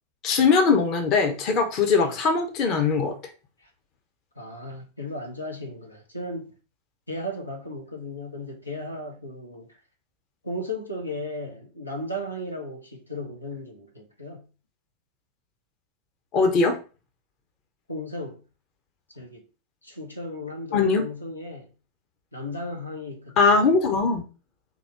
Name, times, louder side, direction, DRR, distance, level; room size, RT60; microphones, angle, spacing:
voice 1, 0.2-3.1 16.3-16.8 20.7-21.0 23.4-24.2, left 4 dB, 35° left, 0.9 m, -21 dB
voice 2, 4.4-6.5 7.1-9.8 10.4-14.5 17.9-18.4 19.1-19.4 19.8-21.7 22.3-23.6, left 1 dB, 85° left, 0.9 m, -35 dB
3.9 x 2.8 x 4.5 m
figure-of-eight pair, 90°, 0 cm